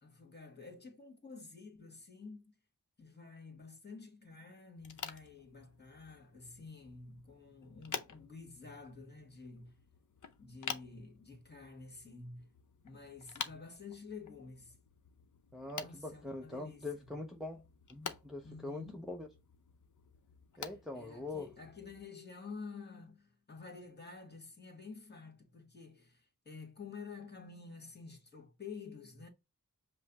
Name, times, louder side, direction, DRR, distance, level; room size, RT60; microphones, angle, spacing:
voice 1, 0.0-2.5 3.0-9.8 10.4-12.5 12.8-14.7 15.6-17.1 18.4-19.1 20.5-29.3, left 4 dB, 30° left, 1.6 m, -50 dB
sound 1, 4.8-22.0, left 6 dB, 60° left, 0.7 m, -49 dB
voice 2, 15.5-17.6 17.9-19.3 20.6-21.5, left 2 dB, ahead, 0.6 m, -43 dB
5.4 x 2.1 x 4.0 m
wide cardioid pair, 75°, 34 cm